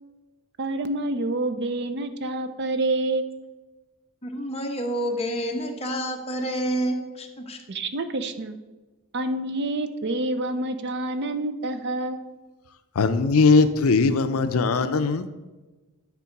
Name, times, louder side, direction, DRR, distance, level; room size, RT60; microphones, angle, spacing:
voice 1, 0.6-3.4 7.7-8.6 9.1-12.3, right 2 dB, 50° right, 10 dB, 0.6 m, -27 dB
voice 2, 4.2-7.6, right 1 dB, 30° left, 2 dB, 1.0 m, -28 dB
voice 3, 13.0-15.3, left 4 dB, 70° left, 10 dB, 0.5 m, -20 dB
9.8 x 3.7 x 5.9 m, 1.2 s
head